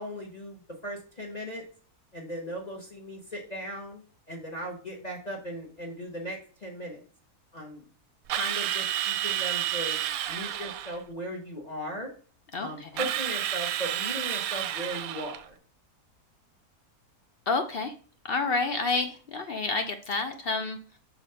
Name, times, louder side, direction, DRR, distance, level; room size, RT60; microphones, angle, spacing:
voice 1, 0.0-1.6 2.1-4.0 4.3-7.0 7.5-7.8 8.3-10.0 10.3-12.1 12.6-15.6, equal, 30° left, 1 dB, 1.3 m, -37 dB
Drill, 8.3-11.0 13.0-15.5, right 12 dB, 70° right, 1.0 m, -30 dB
voice 2, 12.5-12.9 17.5-17.9 18.2-20.8, left 3 dB, 55° left, 6 dB, 0.7 m, -29 dB
5.9 x 4.2 x 5.6 m, 0.42 s
omnidirectional pair, 1.6 m